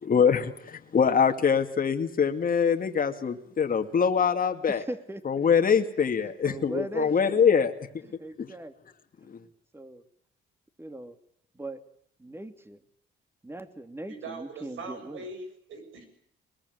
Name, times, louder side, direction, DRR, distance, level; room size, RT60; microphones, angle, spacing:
voice 1, 0.0-4.8 5.2-8.1 8.4-8.5 9.3-9.4, left 6 dB, 45° left, 5 dB, 2.4 m, -24 dB
voice 2, 4.7-5.5 6.4-7.5 8.2-8.7 9.2-9.4 9.7-10.0 10.8-11.2 11.5-11.8 12.2-12.8 13.4-15.2, right 1 dB, 10° right, 9 dB, 2.8 m, -39 dB
voice 3, 14.1-16.1, right 3 dB, 80° right, 7 dB, 7.2 m, -41 dB
22.0 x 21.5 x 9.5 m, 0.69 s
cardioid pair, 90°, 20 cm